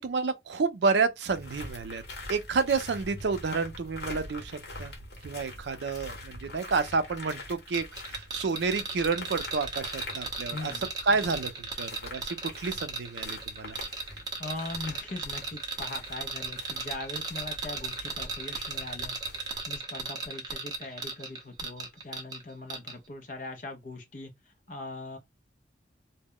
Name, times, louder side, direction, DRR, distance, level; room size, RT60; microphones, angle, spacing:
voice 1, 0.0-2.0 2.3-4.9 5.2-10.7 11.0-13.8, right 4 dB, 80° right, 0.4 m, -30 dB
sound 1, 1.2-19.6, left 2 dB, 75° left, 1.0 m, -45 dB
sound 2, 7.7-22.4 22.7-22.9, right 4 dB, 25° right, 0.5 m, -36 dB
voice 2, 10.5-10.8 14.4-19.2 19.7-25.2, left 2 dB, 45° left, 0.5 m, -40 dB
2.1 x 2.0 x 3.6 m
head